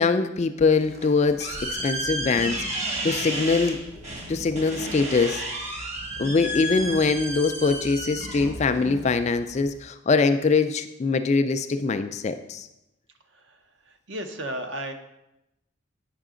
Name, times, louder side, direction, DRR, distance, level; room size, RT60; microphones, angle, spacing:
voice 1, 0.0-3.8 4.3-5.9 6.2-12.7, left 4 dB, 30° left, 9 dB, 0.3 m, -23 dB
sound 1, 0.8-9.9, right 1 dB, 30° right, 1.0 m, -33 dB
sound 2, 1.9-9.6, equal, 90° right, 1.0 m, -43 dB
voice 2, 14.1-14.9, right 1 dB, 55° right, 6 dB, 0.7 m, -32 dB
9.0 x 5.8 x 3.7 m, 0.91 s
head